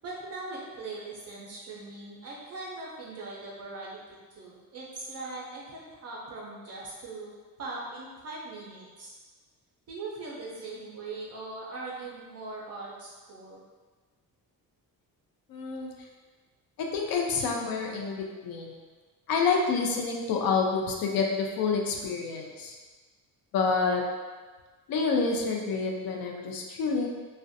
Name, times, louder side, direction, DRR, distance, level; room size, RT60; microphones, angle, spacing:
voice 1, 0.0-4.0 4.4-9.1 9.9-13.6, right 3 dB, 45° right, -5 dB, 0.4 m, -40 dB
voice 2, 15.5-15.9 16.8-18.8 19.3-22.8 23.5-24.0 24.9-27.1, left 4 dB, 70° left, 1 dB, 0.5 m, -28 dB
2.4 x 2.1 x 2.6 m, 1.4 s
cardioid pair, 165°, 36 cm